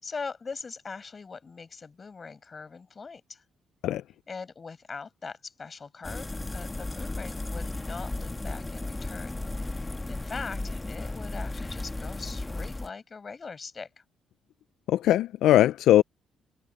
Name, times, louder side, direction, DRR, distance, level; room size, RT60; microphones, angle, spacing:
voice 1, 0.0-3.4 4.3-6.3 6.5-13.9, left 4 dB, 35° left, 5.4 m, -41 dB
sound 1, 6.0-12.9, left 2 dB, 15° left, 1.3 m, -35 dB
voice 2, 14.9-16.0, left 13 dB, 85° left, 0.3 m, -20 dB
cardioid pair, 90°, 0 cm